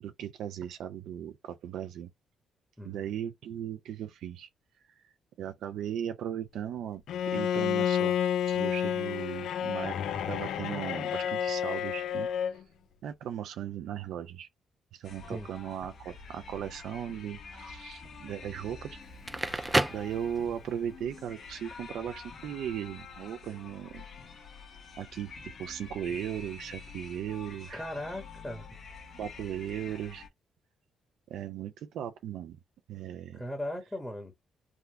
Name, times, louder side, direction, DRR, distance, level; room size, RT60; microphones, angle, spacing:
voice 1, 0.0-2.1 2.8-4.5 5.4-8.2 8.5-12.3 13.0-14.5 14.9-19.0 19.9-24.1 25.0-27.8 29.2-30.3 31.3-32.6 32.9-33.4, right 10 dB, 75° right, 0.4 m, -37 dB
voice 2, 2.8-3.1 15.3-15.5 27.7-28.7 33.3-34.3, left 1 dB, 5° left, 1.1 m, -38 dB
Bowed string instrument, 7.1-12.6, left 9 dB, 75° left, 0.4 m, -30 dB
sound 1, 15.0-30.3, left 4 dB, 55° left, 1.3 m, -47 dB
Crackle, 19.1-20.8, right 2 dB, 15° right, 0.3 m, -30 dB
3.5 x 2.2 x 2.8 m
cardioid pair, 90°, 0 cm